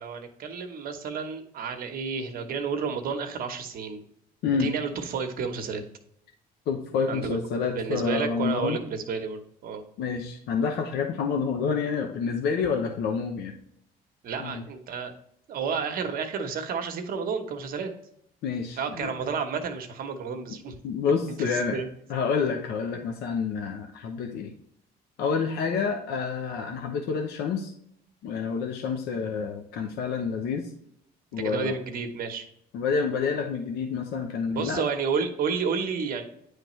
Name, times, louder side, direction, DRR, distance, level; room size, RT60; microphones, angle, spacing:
voice 1, 0.0-4.0 4.6-5.8 7.1-9.8 14.2-15.1 15.5-17.9 18.8-20.7 21.3-21.9 31.4-32.4 34.5-36.2, right 5 dB, 60° right, 6 dB, 1.0 m, -31 dB
voice 2, 6.7-8.8 10.0-13.6 14.4-14.6 18.4-19.1 20.8-21.8 22.1-24.5 25.2-27.7 28.2-30.7 31.3-31.7 32.7-34.8, left 5 dB, 75° left, 3 dB, 0.8 m, -28 dB
9.3 x 3.3 x 3.1 m, 0.71 s
cardioid pair, 110°, 17 cm